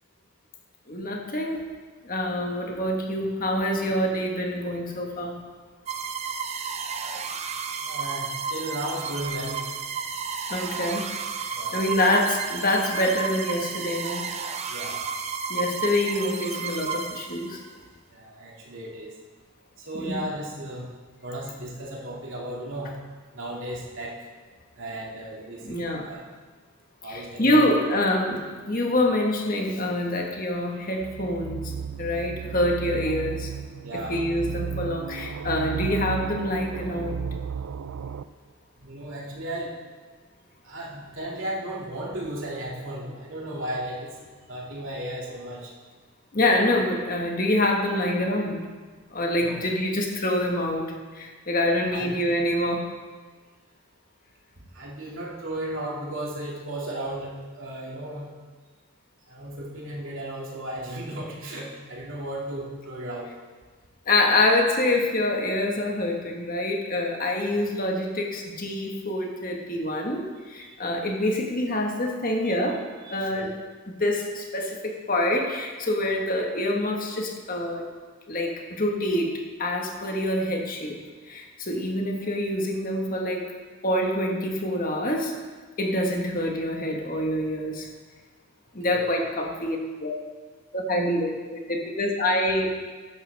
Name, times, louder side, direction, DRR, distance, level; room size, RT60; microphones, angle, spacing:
voice 1, 0.9-1.6 2.0-5.3 10.5-11.0 11.7-14.3 15.5-17.6 19.9-20.2 25.6-26.1 27.1-31.7 32.0-33.5 33.9-37.3 46.3-48.6 49.1-52.9 64.0-72.8 73.1-73.5 73.9-77.9 78.3-79.3 79.6-81.0 81.3-83.5 83.8-85.3 85.8-87.9 88.7-90.2 90.7-92.7, left 1 dB, 40° left, 1 dB, 1.5 m, -26 dB
sound 1, 5.9-17.7, right 5 dB, 30° right, 0.5 m, -32 dB
voice 2, 7.8-9.6 11.5-11.8 14.7-15.0 18.1-19.2 19.9-20.9 21.2-22.9 23.3-24.2 24.8-26.2 27.0-27.9 33.8-34.3 38.8-39.7 40.6-44.1 44.5-45.7 49.4-49.6 51.9-52.1 54.7-58.3 59.3-63.3 67.5-67.6 70.6-70.7 73.0-73.5 88.8-89.1, right 1 dB, 60° right, -4 dB, 2.4 m, -35 dB
sound 2, 31.0-38.2, right 6 dB, 80° right, 0.4 m, -34 dB
14.0 x 10.5 x 3.5 m, 1.4 s
head